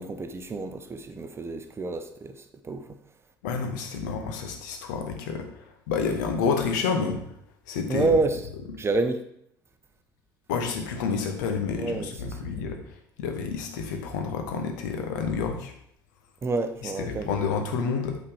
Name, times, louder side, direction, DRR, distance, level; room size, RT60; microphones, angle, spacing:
voice 1, 0.0-3.0 7.9-8.5 8.8-9.2 11.7-12.5 16.4-17.3, right 3 dB, 25° right, 0.8 m, -28 dB
voice 2, 3.4-5.5 5.9-7.2 7.7-8.1 10.5-12.8 13.2-15.7 17.0-18.2, left 5 dB, 65° left, 1.2 m, -29 dB
8.6 x 4.3 x 4.9 m
figure-of-eight pair, 60°, 11 cm